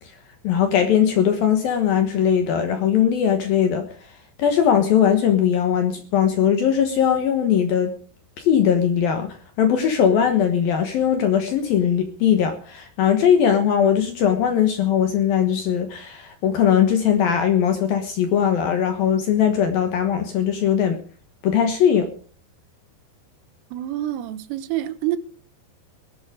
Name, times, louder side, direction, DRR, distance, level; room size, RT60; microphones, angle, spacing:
voice 1, 0.4-3.8 4.4-7.9 8.4-21.0 21.4-22.1, left 8 dB, 70° left, 2.4 m, -20 dB
voice 2, 23.7-25.2, right 13 dB, 85° right, 3.6 m, -27 dB
18.5 x 12.0 x 5.0 m
omnidirectional pair, 5.8 m